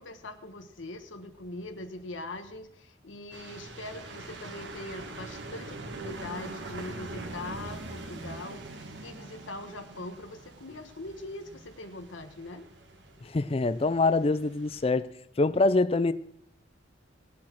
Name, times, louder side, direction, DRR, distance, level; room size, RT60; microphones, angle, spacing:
voice 1, 0.0-12.7, left 2 dB, 85° left, 1.3 m, -42 dB
sound 1, 3.3-14.9, right 2 dB, 70° right, 1.9 m, -43 dB
voice 2, 13.2-15.1 15.4-16.1, left 3 dB, 30° left, 0.4 m, -25 dB
18.0 x 7.4 x 6.3 m
head